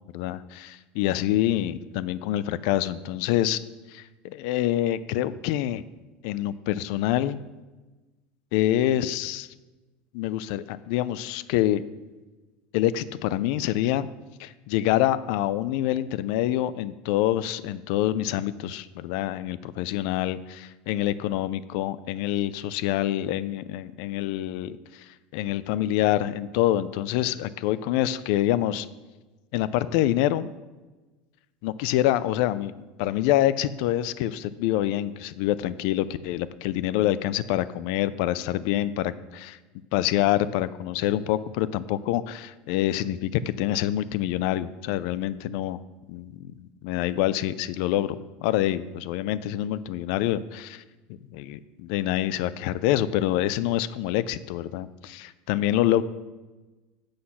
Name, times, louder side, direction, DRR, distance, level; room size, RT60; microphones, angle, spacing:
voice 1, 0.1-3.6 3.9-5.8 6.2-7.4 8.5-9.5 10.1-11.8 12.7-14.1 14.4-28.9 29.5-30.5 31.6-39.6 39.9-45.8 46.1-50.8 51.3-56.0, left 13 dB, 65° left, 16 dB, 0.4 m, -26 dB
7.7 x 6.4 x 5.7 m, 1.2 s
cardioid pair, 155°, 4 cm